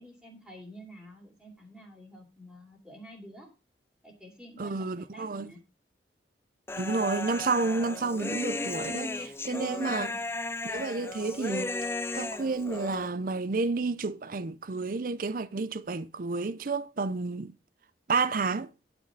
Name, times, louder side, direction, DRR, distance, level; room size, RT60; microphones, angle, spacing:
voice 1, 0.0-3.5 4.0-5.6 9.8-10.2, equal, 5° right, 3.3 m, -49 dB
voice 2, 4.6-5.5 6.8-10.1 10.6-11.7 12.1-17.5 18.1-18.7, right 3 dB, 50° right, 0.6 m, -30 dB
Human voice, 6.7-13.1, left 2 dB, 15° left, 0.4 m, -35 dB
11.5 x 5.1 x 6.0 m
head